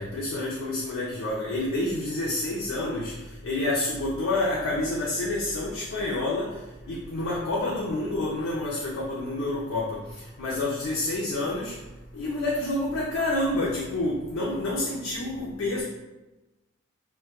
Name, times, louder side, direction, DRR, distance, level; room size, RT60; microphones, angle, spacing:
voice 1, 0.0-3.1 3.4-6.5 6.9-10.0 10.4-11.7 12.1-15.8, left 2 dB, 75° left, -4 dB, 0.4 m, -28 dB
2.2 x 2.1 x 2.8 m, 1.1 s
head